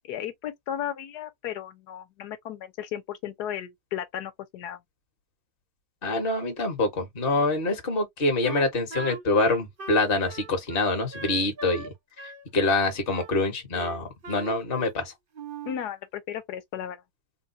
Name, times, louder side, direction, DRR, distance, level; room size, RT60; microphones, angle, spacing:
voice 1, 0.1-4.8 15.6-17.0, left 10 dB, 65° left, 1.3 m, -35 dB
voice 2, 6.0-11.9 12.5-15.1, left 2 dB, 35° left, 1.4 m, -25 dB
Wind instrument woodwind instrument, 8.4-11.9 12.2-13.3 13.7-15.0 15.3-15.8, right 3 dB, 45° right, 0.7 m, -40 dB
3.9 x 2.2 x 2.7 m
omnidirectional pair, 2.0 m